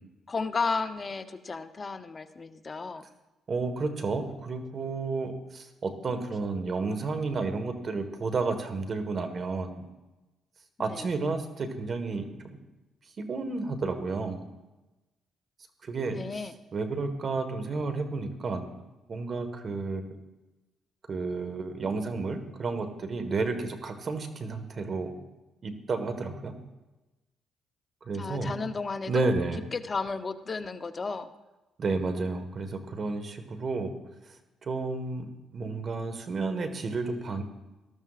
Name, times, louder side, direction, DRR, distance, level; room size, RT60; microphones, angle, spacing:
voice 1, 0.3-3.0 10.8-11.1 16.1-16.6 28.2-29.3 29.7-31.3, left 4 dB, 35° left, 9 dB, 0.8 m, -33 dB
voice 2, 3.5-9.8 10.8-12.6 13.2-14.4 15.8-16.2 16.7-18.7 19.1-20.1 21.1-25.2 25.6-26.5 28.0-28.5 29.1-29.6 31.8-33.9 34.6-37.4, right 3 dB, 45° right, 8 dB, 1.5 m, -31 dB
19.0 x 13.0 x 2.5 m, 1.1 s
cardioid pair, 90°, 0 cm